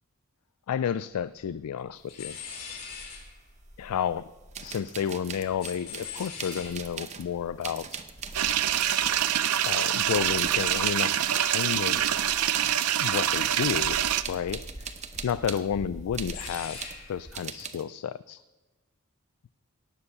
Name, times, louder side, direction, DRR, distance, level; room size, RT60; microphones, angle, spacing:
voice 1, 0.7-2.4 3.8-4.3 4.6-8.0 9.6-12.2 13.0-14.0 14.3-14.9 15.2-18.4, left 8 dB, 85° left, 16 dB, 0.3 m, -31 dB
sound 1, 1.1-1.2 1.4-1.8 2.1-4.9 5.2-11.4 11.7-12.7 13.0-17.3, left 3 dB, 45° left, 4.6 m, -44 dB
sound 2, 3.7-3.8 4.5-7.3 7.6-9.8 10.1-12.7 13.0-15.6 16.1-17.0 17.3-17.8, right 7 dB, 30° right, 0.8 m, -40 dB
sound 3, 8.3-14.2, right 11 dB, 85° right, 0.5 m, -25 dB
17.5 x 7.0 x 6.6 m, 1.2 s
head